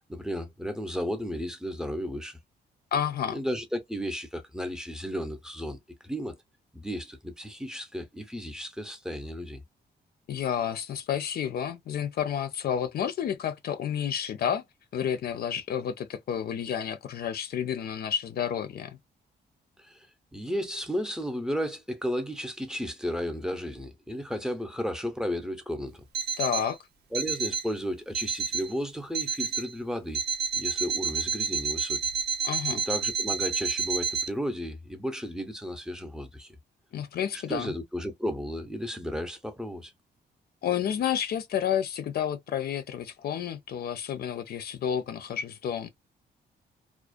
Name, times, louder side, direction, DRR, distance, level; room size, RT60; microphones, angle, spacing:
voice 1, 0.1-2.4 3.3-5.8 6.0-6.4 6.7-9.6 19.8-20.1 20.3-26.0 27.1-30.2 30.5-32.0 32.7-36.5 37.3-39.9, equal, 5° right, 0.6 m, -33 dB
voice 2, 2.9-3.4 10.3-14.6 14.9-19.0 26.4-26.8 32.4-32.8 36.9-37.7 40.6-45.9, left 9 dB, 60° left, 0.4 m, -30 dB
Alarm, 26.1-26.7 27.1-27.7 28.1-28.7 29.1-29.7 30.1-34.3, right 6 dB, 65° right, 0.6 m, -30 dB
2.4 x 2.1 x 2.4 m
cardioid pair, 95°, 18 cm